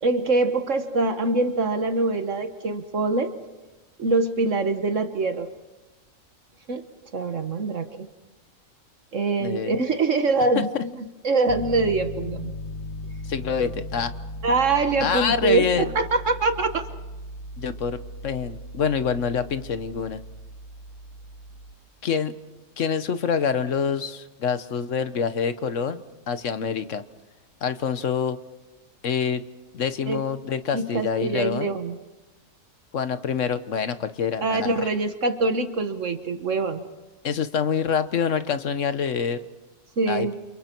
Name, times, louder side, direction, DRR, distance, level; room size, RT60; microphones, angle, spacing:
voice 1, 0.0-3.3 4.0-5.5 6.7-6.8 7.1-7.9 9.1-10.9 11.2-12.5 14.4-16.8 30.1-30.2 30.7-32.0 34.4-36.8 40.0-40.3, right 3 dB, 55° right, 8 dB, 1.6 m, -24 dB
voice 2, 9.4-9.8 10.5-10.7 13.2-14.1 15.0-15.9 17.6-18.0 18.2-20.2 22.0-22.3 22.8-27.0 27.6-28.4 29.0-29.4 29.7-31.7 32.9-34.9 37.2-39.4 40.1-40.3, left 6 dB, 55° left, 11 dB, 1.4 m, -26 dB
Piano, 11.5-21.7, left 1 dB, 25° left, 3.9 m, -37 dB
29.5 x 28.5 x 4.5 m, 1.1 s
omnidirectional pair, 1.6 m